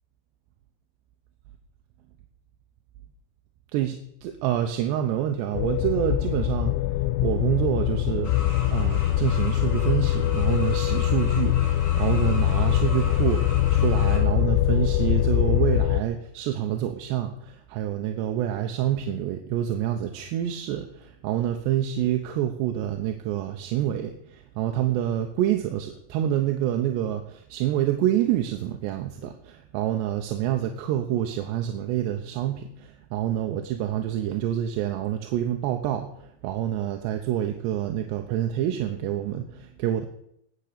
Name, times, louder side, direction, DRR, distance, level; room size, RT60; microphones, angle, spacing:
voice 1, 3.7-6.7 7.2-8.4 8.7-36.1 36.4-40.1, right 11 dB, 75° right, 5 dB, 2.9 m, -27 dB
sound 1, 5.5-16.0, left 13 dB, 90° left, 3.1 m, -23 dB
sound 2, 8.2-14.2, left 2 dB, 30° left, 3.4 m, -39 dB
19.0 x 7.5 x 6.8 m, 0.74 s
omnidirectional pair, 5.3 m